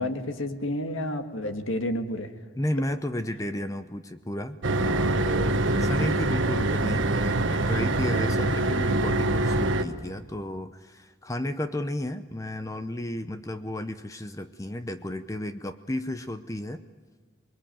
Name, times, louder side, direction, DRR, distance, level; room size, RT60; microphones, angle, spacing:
voice 1, 0.0-2.3 5.8-6.2, left 1 dB, 90° left, 7 dB, 1.7 m, -31 dB
voice 2, 2.6-16.8, left 1 dB, 15° left, 10 dB, 0.7 m, -33 dB
sound 1, 4.6-9.8, right 2 dB, 75° right, 1.3 m, -24 dB
27.5 x 21.5 x 9.1 m, 1.4 s
head